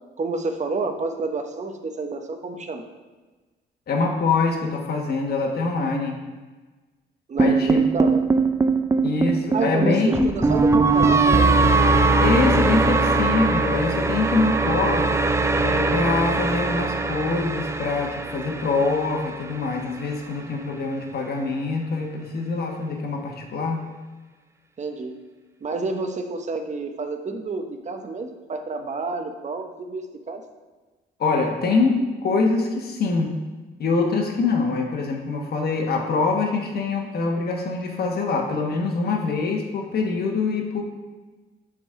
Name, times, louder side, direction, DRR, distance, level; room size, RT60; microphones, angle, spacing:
voice 1, 0.2-2.9 7.3-8.2 9.5-11.5 24.8-25.2 25.6-30.4, right 3 dB, 35° right, 6 dB, 0.8 m, -29 dB
voice 2, 3.9-6.2 7.4-8.0 9.0-10.3 10.7-10.8 12.2-15.1 15.6-23.9 31.2-33.4 33.8-40.8, left 4 dB, 50° left, 1 dB, 1.1 m, -24 dB
sound 1, 7.4-19.6, right 3 dB, 15° right, 0.4 m, -21 dB
7.1 x 3.7 x 4.6 m, 1.3 s
cardioid pair, 90°, 20 cm